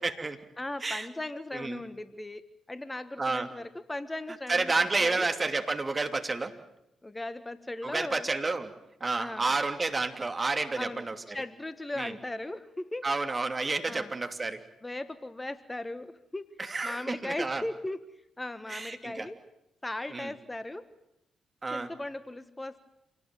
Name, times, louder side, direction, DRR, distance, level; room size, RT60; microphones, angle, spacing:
voice 1, 0.0-0.4 0.8-1.1 1.5-1.8 3.2-3.5 4.5-6.6 7.8-8.7 9.0-11.4 12.0-12.1 13.0-14.6 16.6-17.6 18.7-19.3 20.1-20.3 21.6-21.9, right 3 dB, 30° right, 7 dB, 2.9 m, -30 dB
voice 2, 0.6-2.4 2.7-5.3 7.0-8.3 9.2-9.5 10.8-11.1 11.3-13.1 13.9-14.2 14.8-16.5 16.8-18.0 18.4-19.4 19.8-20.9 21.7-22.8, left 1 dB, 20° left, 12 dB, 1.5 m, -38 dB
27.5 x 19.0 x 9.3 m, 0.86 s
hypercardioid pair, 40°, 0 cm